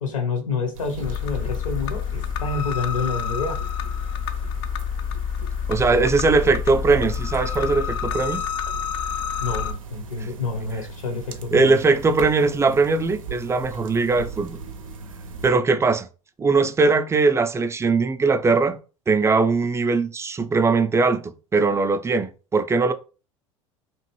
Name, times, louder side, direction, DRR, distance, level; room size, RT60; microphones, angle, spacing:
voice 1, 0.0-3.6 9.4-11.8, left 4 dB, 80° left, 0.9 m, -28 dB
sound 1, 0.7-15.5, right 4 dB, 85° right, 0.5 m, -38 dB
sound 2, 1.0-9.7, left 8 dB, 65° left, 0.5 m, -28 dB
voice 2, 5.7-8.4 11.5-14.6 15.4-16.1 16.4-18.8 19.1-22.9, right 4 dB, 15° right, 0.4 m, -20 dB
2.9 x 2.5 x 3.0 m
hypercardioid pair, 70°, 17 cm